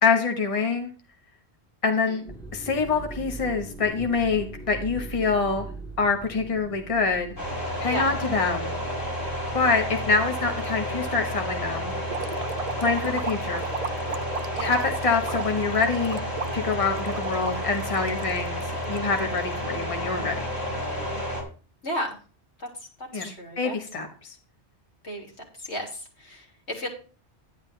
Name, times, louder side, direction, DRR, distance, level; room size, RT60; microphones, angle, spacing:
voice 1, 0.0-0.9 1.8-2.2 2.5-5.7 6.0-7.3 7.8-8.8 9.5-11.9 12.8-13.6 14.6-16.2 16.5-20.3 23.1-24.3, left 4 dB, 30° left, 4 dB, 1.4 m, -25 dB
sound 1, 2.3-11.7 12.1-12.5 13.2-13.5, right 3 dB, 5° left, 0.8 m, -42 dB
sound 2, 7.4-21.4, equal, 50° left, 4.7 m, -31 dB
sound 3, 12.1-19.4, right 6 dB, 40° right, 0.7 m, -35 dB
voice 2, 21.8-22.2 23.1-23.8 25.0-25.3 25.6-26.9, equal, 80° left, 0 dB, 3.7 m, -33 dB
11.5 x 10.5 x 3.3 m, 0.38 s
omnidirectional pair, 1.1 m